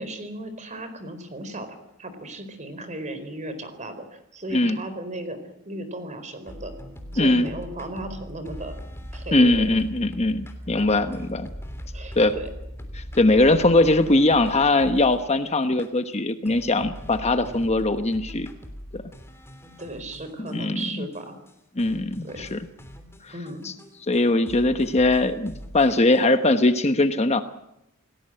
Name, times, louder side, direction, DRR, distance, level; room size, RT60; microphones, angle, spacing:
voice 1, 0.0-5.4 5.6-6.7 7.1-8.7 9.1-9.8 11.9-12.5 19.8-21.4 22.2-22.6 23.3-23.7, right 1 dB, 35° right, 10 dB, 4.3 m, -36 dB
sound 1, 6.5-15.3 15.8-15.9 16.4-20.9 21.1-21.2 21.5-21.6 21.8-24.2 24.5-26.2, equal, 10° left, 3.3 m, -40 dB
voice 2, 7.2-7.5 9.3-11.5 12.2-12.3 13.0-18.5 18.9-19.0 20.5-21.1 21.8-22.6 23.2-23.3 23.6-23.7 24.1-27.4, left 2 dB, 30° left, 9 dB, 1.1 m, -21 dB
28.5 x 18.5 x 7.8 m, 0.85 s
head